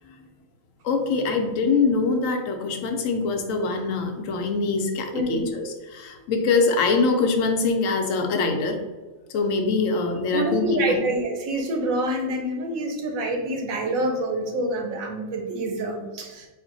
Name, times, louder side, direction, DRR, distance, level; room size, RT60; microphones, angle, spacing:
voice 1, 0.8-8.8 9.3-11.0, left 4 dB, 80° left, 4 dB, 1.0 m, -24 dB
voice 2, 5.1-5.4 10.3-16.5, right 1 dB, 85° right, 2 dB, 1.2 m, -26 dB
4.1 x 2.1 x 3.9 m, 1.2 s
omnidirectional pair, 1.4 m